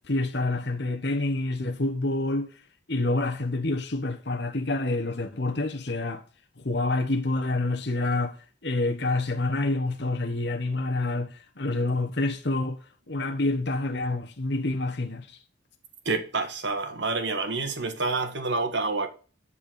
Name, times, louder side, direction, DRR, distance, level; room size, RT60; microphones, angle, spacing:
voice 1, 0.1-2.5 2.9-6.2 6.6-8.4 8.6-12.8 13.1-15.4, left 2 dB, 55° left, 1.3 m, -27 dB
voice 2, 16.0-19.1, right 3 dB, 60° right, 1.5 m, -28 dB
11.0 x 4.4 x 6.8 m
head